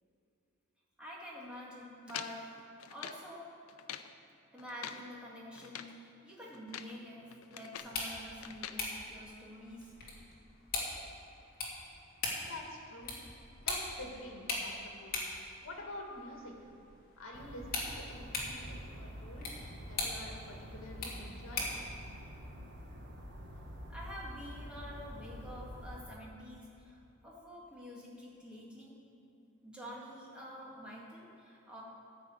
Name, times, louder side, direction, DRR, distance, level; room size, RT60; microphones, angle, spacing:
voice 1, 1.0-2.5 2.9-3.5 4.5-9.9 23.9-28.9 29.6-31.8, equal, 5° right, -5 dB, 2.0 m, -48 dB
sound 1, 2.1-3.3 3.7-4.1 4.6-5.1 5.5-6.0 6.5-7.0 7.3-8.0 8.4-8.8, left 9 dB, 90° left, 0.5 m, -45 dB
sound 2, 7.8-21.9, left 3 dB, 45° left, 2.2 m, -42 dB
voice 2, 12.5-13.1 13.6-16.7 17.2-21.8, left 1 dB, 70° left, 0 dB, 2.0 m, -48 dB
sound 3, 17.3-26.0, equal, 55° right, 1.4 m, -47 dB
13.5 x 4.9 x 8.1 m, 2.8 s
head